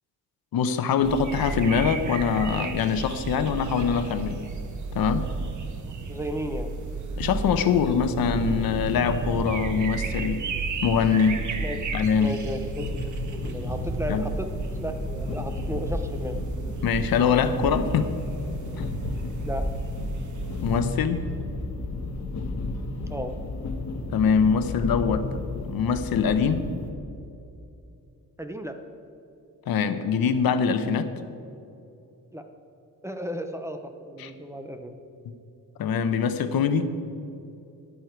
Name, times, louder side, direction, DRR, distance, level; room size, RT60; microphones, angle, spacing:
voice 1, 0.5-4.4 4.9-5.3 7.2-10.4 10.8-11.4 11.9-12.4 14.1-14.2 16.8-18.1 18.8-18.9 20.6-21.3 24.1-25.3 25.7-26.7 29.7-31.1 34.2-34.3 35.8-36.9, left 6 dB, 85° left, 10 dB, 0.9 m, -23 dB
sound 1, 1.0-20.8, right 4 dB, 55° right, 1.0 m, -33 dB
voice 2, 6.1-6.7 11.6-11.8 12.2-14.5 14.8-16.4 19.4-19.7 23.1-23.3 28.4-28.8 32.3-32.5 33.0-35.0, equal, 10° right, 6 dB, 0.6 m, -34 dB
sound 2, 12.8-26.9, left 2 dB, 50° left, 1.2 m, -33 dB
13.0 x 11.0 x 4.5 m, 2.8 s
wide cardioid pair, 170°, 35 cm